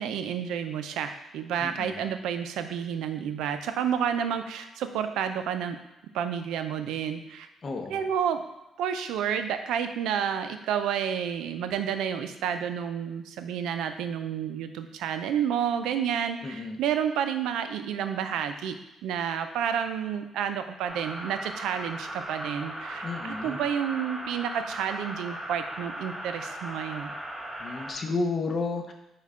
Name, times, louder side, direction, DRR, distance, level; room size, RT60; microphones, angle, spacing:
voice 1, 0.0-5.8 6.1-7.5 7.9-8.4 8.8-18.7 19.0-27.1, right 8 dB, 90° right, 8 dB, 0.3 m, -30 dB
voice 2, 1.6-2.0 7.6-8.1 16.4-16.8 23.0-23.6 27.6-28.9, left 3 dB, 40° left, 4 dB, 0.6 m, -32 dB
sound 1, 20.9-27.9, right 1 dB, 5° right, 0.9 m, -38 dB
5.4 x 2.2 x 3.6 m, 0.95 s
cardioid pair, 90°, 0 cm